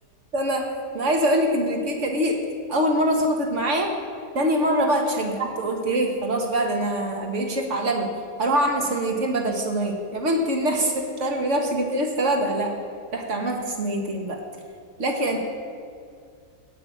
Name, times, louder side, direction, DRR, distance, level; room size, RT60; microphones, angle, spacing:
voice 1, 0.3-0.7 0.9-2.4 2.7-3.9 4.3-8.1 8.4-12.7 13.1-14.4 15.0-15.4, right 1 dB, 45° right, 2 dB, 1.9 m, -24 dB
16.5 x 5.7 x 8.7 m, 2.3 s
omnidirectional pair, 1.7 m